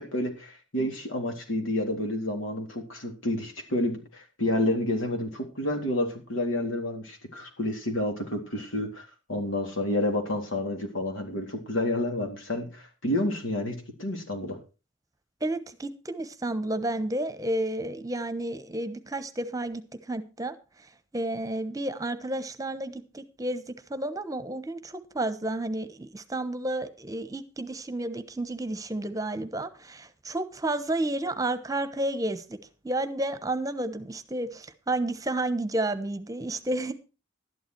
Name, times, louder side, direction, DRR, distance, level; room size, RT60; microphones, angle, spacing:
voice 1, 0.0-14.6, left 1 dB, 90° left, 3.7 m, -29 dB
voice 2, 15.4-20.5 21.1-32.6 32.8-36.9, right 1 dB, 20° right, 1.1 m, -31 dB
12.0 x 11.0 x 4.6 m
head